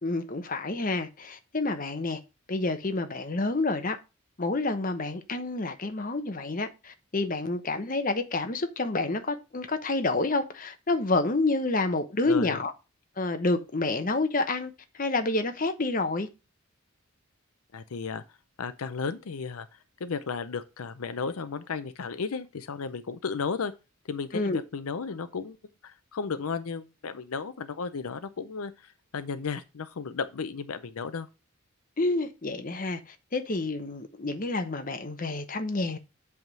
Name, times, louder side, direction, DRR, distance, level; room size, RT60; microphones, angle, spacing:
voice 1, 0.0-2.2 2.5-4.0 4.4-12.7 13.2-14.7 15.0-16.3 24.3-24.6 32.0-33.0 33.3-36.0, left 2 dB, 35° left, 0.8 m, -28 dB
voice 2, 12.2-12.6 17.7-18.2 18.6-19.7 20.0-23.7 24.1-25.6 25.8-31.3, left 5 dB, 75° left, 0.6 m, -34 dB
8.0 x 3.6 x 6.1 m
head